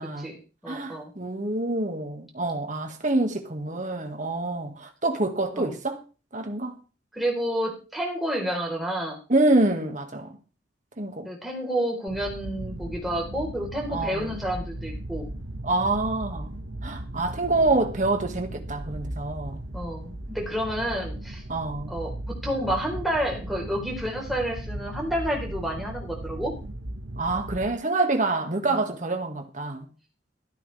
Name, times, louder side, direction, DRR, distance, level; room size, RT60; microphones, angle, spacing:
voice 1, 0.0-1.1 5.5-5.7 7.1-9.2 11.2-15.3 19.7-21.4 21.9-22.1 22.4-26.5 28.7-28.8, equal, ahead, 4.1 m, -30 dB
voice 2, 0.7-6.0 6.3-6.8 9.3-10.3 11.0-11.3 13.9-14.4 15.6-16.5 16.8-19.6 21.5-21.9 27.2-29.9, right 2 dB, 40° right, 2.0 m, -26 dB
sound 1, 12.1-27.7, right 1 dB, 85° right, 1.6 m, -37 dB
13.5 x 12.5 x 3.4 m
head